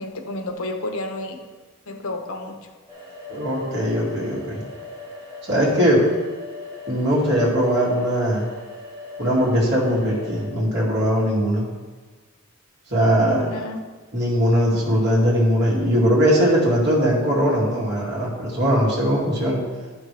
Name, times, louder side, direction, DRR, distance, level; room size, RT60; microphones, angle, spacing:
voice 1, 0.0-1.4 1.9-2.6 12.9-13.8, left 2 dB, 80° left, 5 dB, 0.9 m, -31 dB
sound 1, 2.9-10.5, left 2 dB, 25° right, 2.6 m, -39 dB
voice 2, 3.3-4.6 5.5-6.0 6.9-8.5 9.2-11.7 12.9-13.4 14.1-19.6, equal, 55° right, -5 dB, 2.5 m, -20 dB
11.5 x 6.2 x 3.4 m, 1.4 s
head